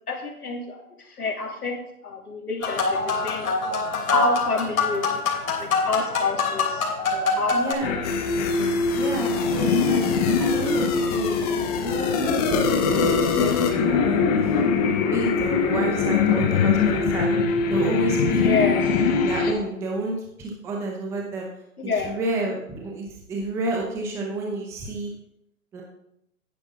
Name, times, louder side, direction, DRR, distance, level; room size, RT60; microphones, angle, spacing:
voice 1, 0.1-1.8 2.0-3.5 4.1-5.2 5.6-8.0 18.4-19.1 21.8-22.2, left 3 dB, 90° left, 0 dB, 3.0 m, -28 dB
sound 1, 2.6-7.7, left 4 dB, 65° left, 3.4 m, -25 dB
voice 2, 7.5-8.0 8.9-10.1 10.4-14.6 15.0-17.4 17.7-18.4 19.2-21.5 22.0-25.1 25.7-25.8, right 2 dB, 5° right, 0 dB, 0.7 m, -30 dB
sound 2, 7.8-19.5, left 5 dB, 25° left, 1.1 m, -22 dB
10.5 x 9.8 x 3.7 m, 0.77 s
hypercardioid pair, 145°, 44 cm